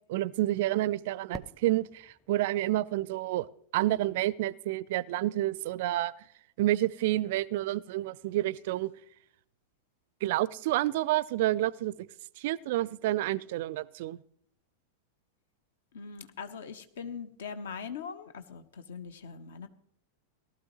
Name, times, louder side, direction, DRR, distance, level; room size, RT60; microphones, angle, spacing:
voice 1, 0.1-3.5 3.7-6.1 6.6-8.9 10.2-12.1 12.4-14.2, right 15 dB, 50° right, 23 dB, 0.4 m, -29 dB
Fireworks, 1.3-4.2, left 1 dB, 5° left, 0.6 m, -50 dB
voice 2, 15.9-19.7, left 6 dB, 60° left, 11 dB, 1.0 m, -41 dB
18.5 x 13.0 x 3.0 m, 0.67 s
figure-of-eight pair, 90°, 0 cm